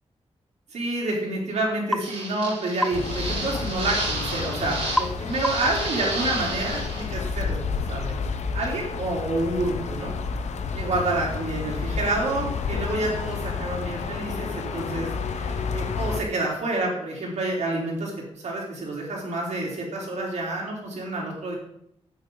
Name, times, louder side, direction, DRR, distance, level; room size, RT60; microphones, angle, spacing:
voice 1, 0.7-8.2 8.5-10.1 10.7-21.5, right 2 dB, 80° right, -2 dB, 3.8 m, -28 dB
sound 1, 1.9-2.1 2.8-3.0 5.0-5.2 5.4-5.8, equal, 5° left, 0.3 m, -26 dB
sound 2, 2.0-5.0 5.3-7.0, right 2 dB, 55° right, 5.1 m, -32 dB
sound 3, 2.9-16.2, left 5 dB, 85° left, 0.9 m, -30 dB
12.0 x 9.3 x 4.0 m, 0.77 s
wide cardioid pair, 175°, 11 cm